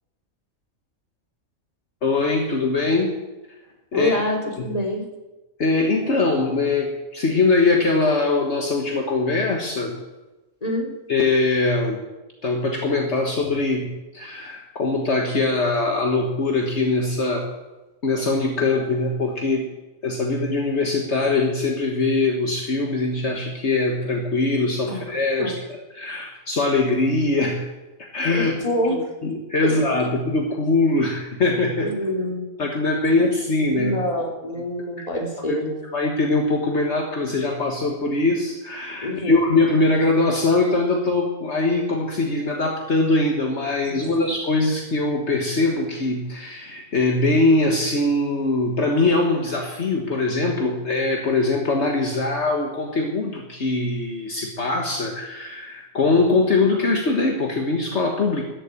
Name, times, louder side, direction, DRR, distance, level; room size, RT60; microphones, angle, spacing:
voice 1, 2.0-3.1 3.9-4.2 4.6-4.7 5.6-10.0 11.1-12.0 12.4-13.9 14.1-17.5 18.0-19.7 20.0-25.5 25.9-27.7 28.0-28.5 29.2-31.9 32.6-33.9 35.5-35.6 35.9-58.4, left 3 dB, 60° left, 1 dB, 1.8 m, -22 dB
voice 2, 3.9-5.1 10.6-10.9 24.9-25.0 25.4-25.5 28.3-29.1 29.6-29.8 31.8-32.5 33.1-33.2 33.7-35.8 39.0-39.4 43.8-44.3, equal, 30° left, 0 dB, 3.0 m, -26 dB
14.0 x 8.4 x 9.9 m, 1.1 s
omnidirectional pair, 1.3 m